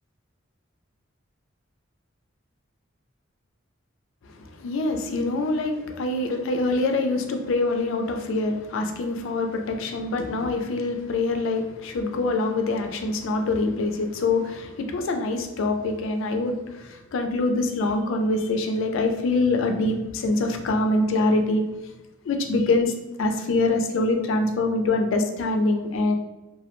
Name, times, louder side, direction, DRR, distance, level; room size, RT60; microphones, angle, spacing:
voice 1, 4.3-21.6 22.3-26.2, left 2 dB, 70° left, 5 dB, 0.3 m, -24 dB
2.2 x 2.1 x 2.9 m, 1.1 s
head